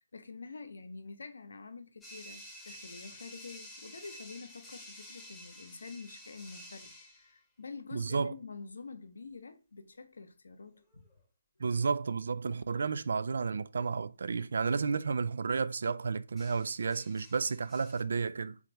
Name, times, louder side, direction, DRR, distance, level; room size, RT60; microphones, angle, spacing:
voice 1, 0.0-11.0, left 4 dB, 70° left, 0.7 m, -47 dB
sound 1, 2.0-7.3 10.8-11.1 16.4-18.0, equal, 5° left, 0.9 m, -51 dB
voice 2, 7.9-8.3 11.6-18.6, right 5 dB, 60° right, 0.3 m, -32 dB
3.5 x 3.2 x 3.9 m
figure-of-eight pair, 145°, 0 cm